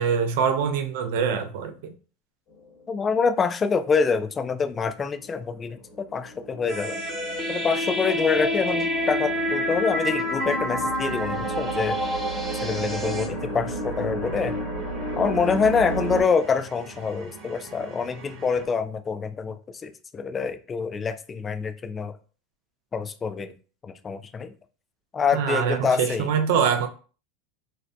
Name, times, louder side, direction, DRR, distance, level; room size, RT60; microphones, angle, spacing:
voice 1, 0.0-1.9 25.3-26.9, right 7 dB, 70° right, 0.5 m, -24 dB
sound 1, 2.5-3.0 3.9-4.0 4.5-16.2, right 1 dB, 45° left, 1.2 m, -34 dB
voice 2, 2.9-5.8 6.1-7.0 7.5-12.0 12.6-14.6 15.2-22.2 22.9-23.5 23.8-24.5 25.1-26.3, left 5 dB, 25° left, 0.3 m, -26 dB
sound 2, 6.7-13.3, equal, 15° right, 0.8 m, -28 dB
sound 3, 11.6-18.7, right 2 dB, 55° right, 0.9 m, -46 dB
2.5 x 2.1 x 2.6 m
hypercardioid pair, 105°, 0 cm